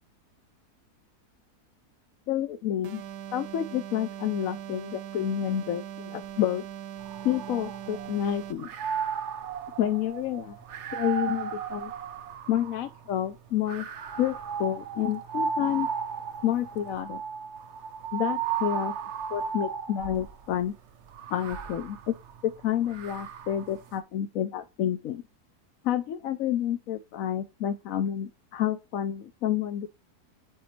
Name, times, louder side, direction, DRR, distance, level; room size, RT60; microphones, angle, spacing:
voice 1, 2.3-3.0 3.3-6.6 7.2-8.7 9.8-10.6 10.9-11.9 12.5-13.9 14.2-15.9 16.4-17.2 18.1-18.9 19.3-20.7 21.3-22.1 22.4-25.2 25.8-29.9, left 11 dB, 65° left, 1.0 m, -29 dB
sound 1, 2.8-8.7, right 10 dB, 80° right, 1.3 m, -40 dB
sound 2, 7.0-8.2 8.6-13.0 13.7-20.4 21.1-23.7, right 7 dB, 55° right, 1.0 m, -35 dB
9.4 x 4.0 x 3.2 m
omnidirectional pair, 1.7 m